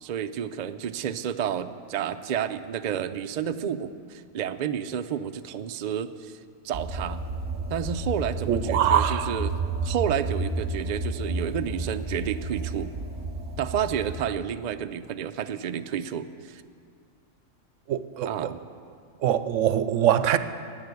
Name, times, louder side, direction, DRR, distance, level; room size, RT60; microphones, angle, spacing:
voice 1, 0.0-6.4 6.6-7.3 7.7-9.5 9.8-12.9 13.6-16.6 18.2-18.6, right 9 dB, 60° right, 9 dB, 0.4 m, -30 dB
sound 1, 6.7-14.2, right 2 dB, 35° right, 1.7 m, -31 dB
voice 2, 8.5-9.4 17.9-18.5 19.2-20.4, right 10 dB, 80° right, 13 dB, 0.9 m, -23 dB
11.0 x 9.8 x 8.2 m, 2.3 s
omnidirectional pair, 1.3 m